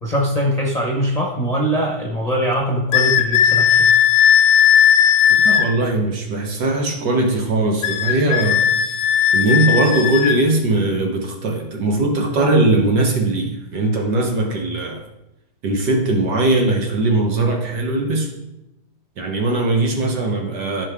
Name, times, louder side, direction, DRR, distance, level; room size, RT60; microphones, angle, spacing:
voice 1, 0.0-3.8, equal, 20° left, -3 dB, 1.1 m, -21 dB
sound 1, 2.9-5.7 7.8-10.4, left 9 dB, 60° left, 1.3 m, -15 dB
voice 2, 5.4-8.7 9.3-15.0 15.6-18.3 19.2-20.9, right 2 dB, 55° right, 1 dB, 1.6 m, -19 dB
14.0 x 5.2 x 3.6 m, 0.91 s
omnidirectional pair, 2.3 m